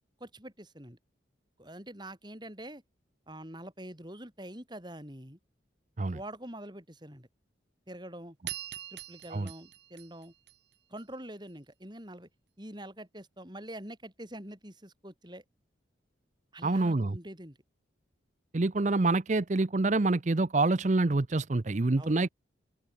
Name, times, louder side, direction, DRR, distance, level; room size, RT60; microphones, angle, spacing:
voice 1, 0.2-1.0 1.6-2.8 3.3-5.4 6.1-7.3 7.9-8.4 8.9-10.3 10.9-12.3 12.6-15.4 16.5-17.6 22.0-22.2, right 1 dB, 25° right, 6.5 m, -45 dB
sound 1, 8.5-11.0, right 12 dB, 60° right, 3.5 m, -43 dB
voice 2, 16.6-17.2 18.5-22.3, right 2 dB, 40° right, 0.6 m, -26 dB
open air
head